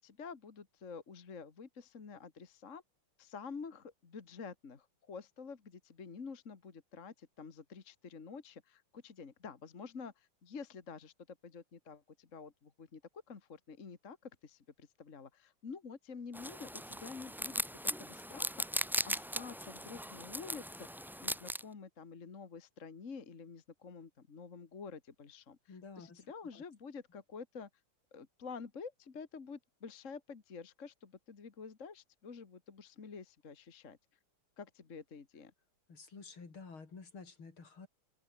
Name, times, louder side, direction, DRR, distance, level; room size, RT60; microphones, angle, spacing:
voice 1, 0.0-2.8 3.2-27.7 28.1-34.0 34.6-35.5, left 5 dB, 35° left, 2.0 m, -49 dB
sound 1, 16.3-21.6, equal, ahead, 0.7 m, -38 dB
voice 2, 25.7-26.2 26.5-26.6 35.9-37.9, left 4 dB, 70° left, 4.5 m, -51 dB
open air
omnidirectional pair, 2.4 m